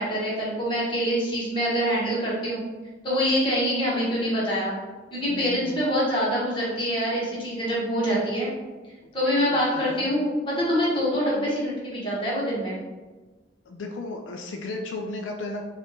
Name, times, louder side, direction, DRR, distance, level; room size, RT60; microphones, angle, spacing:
voice 1, 0.0-2.6 3.0-4.7 5.1-8.5 9.1-12.8, equal, 25° left, -6 dB, 1.2 m, -25 dB
voice 2, 5.3-5.9 9.3-10.1 13.7-15.6, left 2 dB, 80° left, 2 dB, 0.3 m, -35 dB
4.3 x 2.4 x 3.0 m, 1.2 s
head